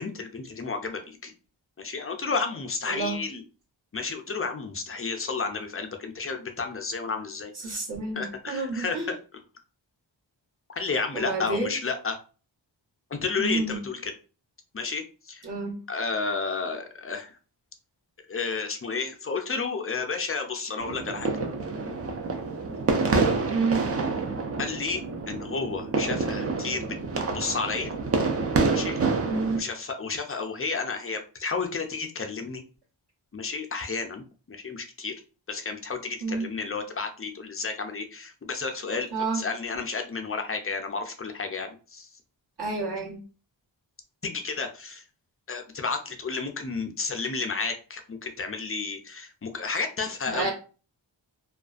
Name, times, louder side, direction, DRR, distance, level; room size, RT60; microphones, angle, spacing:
voice 1, 0.0-1.3 1.8-3.4 3.9-7.8 8.1-9.4 10.8-12.2 13.1-14.1 14.7-15.5 15.9-17.3 18.3-21.3 24.6-27.0 27.3-27.9 28.7-29.0 29.6-32.6 33.3-35.1 35.5-39.1 39.3-42.1 44.2-45.0 45.5-50.5, left 4 dB, 30° left, 5 dB, 0.4 m, -32 dB
voice 2, 7.6-9.1 11.1-11.8 13.4-13.8 15.4-15.8 23.5-23.8 29.3-29.6 36.2-36.5 39.1-39.4 42.6-43.2 50.3-50.5, right 3 dB, 55° right, -2 dB, 1.0 m, -29 dB
sound 1, 20.8-29.6, right 3 dB, 35° right, 0.4 m, -27 dB
2.4 x 2.2 x 2.3 m, 0.36 s
wide cardioid pair, 60°, 46 cm